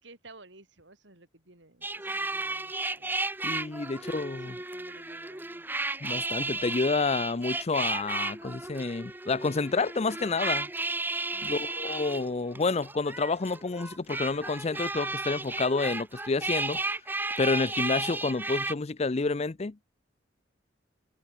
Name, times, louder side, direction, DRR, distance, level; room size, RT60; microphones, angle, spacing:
voice 1, 0.0-3.2 3.8-5.7 11.3-11.7, right 2 dB, 70° right, 6.4 m, -55 dB
sound 1, 1.8-18.7, right 2 dB, 10° right, 1.0 m, -34 dB
voice 2, 3.4-4.5 6.0-10.7 11.4-16.8 17.4-19.8, left 3 dB, 35° left, 0.5 m, -29 dB
head